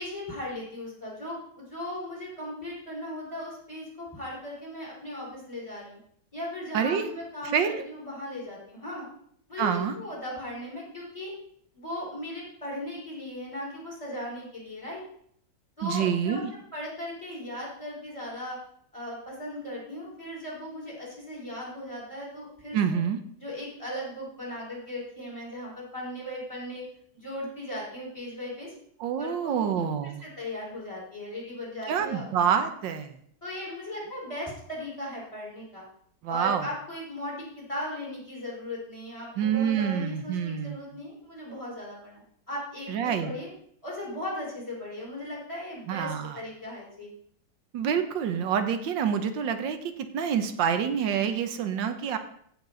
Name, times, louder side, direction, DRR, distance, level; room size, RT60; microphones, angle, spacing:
voice 1, 0.0-6.0 6.3-9.0 9.5-11.3 11.7-15.0 15.8-16.4 16.7-18.6 18.9-23.0 23.4-26.8 27.1-28.7 29.1-29.8 30.2-32.3 33.4-35.8 36.3-42.2 42.5-43.5 43.8-47.1, left 1 dB, 15° left, -4 dB, 4.8 m, -37 dB
voice 2, 6.7-7.1 7.5-7.8 9.6-9.9 15.8-16.5 22.7-23.2 29.0-30.2 31.9-33.1 36.2-36.7 39.4-40.9 42.9-43.3 45.9-46.4 47.7-52.2, right 7 dB, 90° right, 8 dB, 1.6 m, -27 dB
15.5 x 6.6 x 3.9 m, 0.65 s
omnidirectional pair, 2.0 m